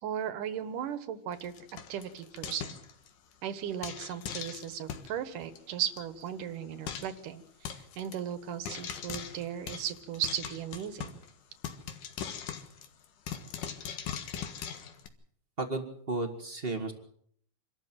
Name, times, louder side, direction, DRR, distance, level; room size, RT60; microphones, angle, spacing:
voice 1, 0.0-1.5 1.9-2.8 3.4-11.2, right 9 dB, 65° right, 12 dB, 2.6 m, -36 dB
Frying (food), 1.3-3.3 3.8-5.1 5.6-5.7 5.8-6.0 6.3-6.4 6.9-7.2 7.7-8.2 8.7-11.3 11.6-15.1, left 8 dB, 65° left, 2.9 m, -40 dB
voice 2, 15.6-16.9, right 2 dB, 35° right, 5 dB, 0.9 m, -33 dB
26.5 x 13.0 x 7.6 m, 0.65 s
omnidirectional pair, 4.3 m